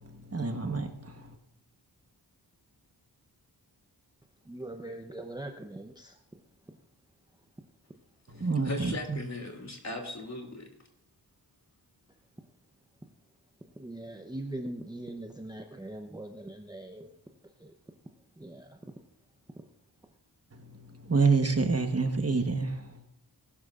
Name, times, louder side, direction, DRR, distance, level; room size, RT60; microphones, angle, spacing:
voice 1, 0.0-1.3 8.3-9.2 20.5-23.0, right 4 dB, 35° right, 1.2 m, -28 dB
voice 2, 4.5-6.1 13.8-17.1 17.6-17.7 18.4-18.8, right 1 dB, 10° right, 0.8 m, -41 dB
voice 3, 8.4-10.7, left 2 dB, 40° left, 2.7 m, -38 dB
20.0 x 12.0 x 2.5 m
wide cardioid pair, 85°, 43 cm